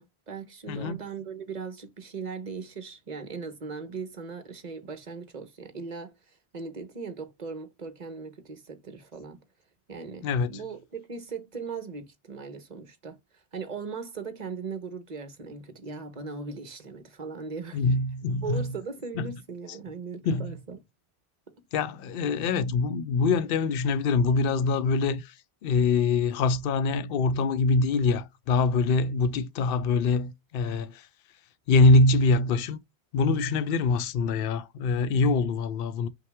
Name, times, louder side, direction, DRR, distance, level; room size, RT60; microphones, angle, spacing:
voice 1, 0.0-9.4 9.9-17.8 18.4-20.8, right 5 dB, 45° right, 1.0 m, -39 dB
voice 2, 0.7-1.0 10.2-10.6 17.7-18.7 19.2-19.3 20.2-20.6 21.7-25.3 25.6-31.1 31.7-32.8 33.1-36.1, left 3 dB, 65° left, 0.7 m, -24 dB
5.6 x 2.1 x 3.5 m
omnidirectional pair, 1.1 m